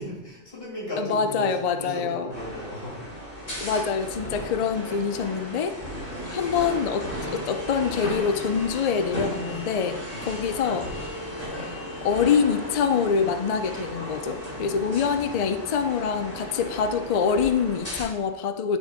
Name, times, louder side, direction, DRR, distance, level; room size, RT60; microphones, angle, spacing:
voice 1, 0.0-3.0 10.1-10.3 14.8-16.0, equal, 50° left, -4 dB, 2.8 m, -37 dB
voice 2, 1.0-2.3 3.6-5.8 6.3-10.9 12.0-18.8, left 6 dB, 80° left, 9 dB, 0.3 m, -25 dB
sound 1, 2.3-18.0, equal, 30° left, 2.8 m, -35 dB
9.6 x 3.3 x 4.3 m, 1.0 s
omnidirectional pair, 1.3 m